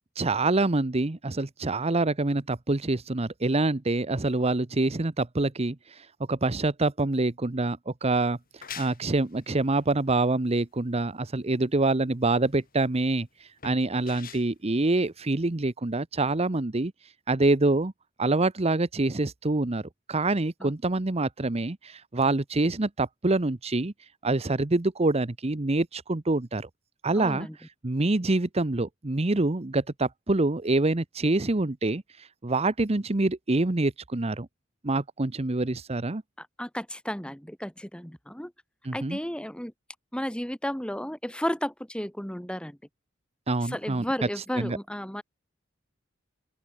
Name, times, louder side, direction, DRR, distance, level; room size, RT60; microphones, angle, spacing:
voice 1, 0.2-16.9 17.3-17.9 18.2-19.8 20.1-23.9 24.2-26.7 27.0-27.5 27.8-34.5 34.8-36.2 38.8-39.2 43.5-44.0 44.6-44.8, right 2 dB, 30° right, 0.9 m, -26 dB
sound 1, 8.3-15.7, left 7 dB, 45° left, 3.3 m, -47 dB
voice 2, 27.1-27.6 36.4-38.5 38.9-39.7 40.1-42.8 43.6-45.2, equal, 5° left, 2.6 m, -33 dB
open air
head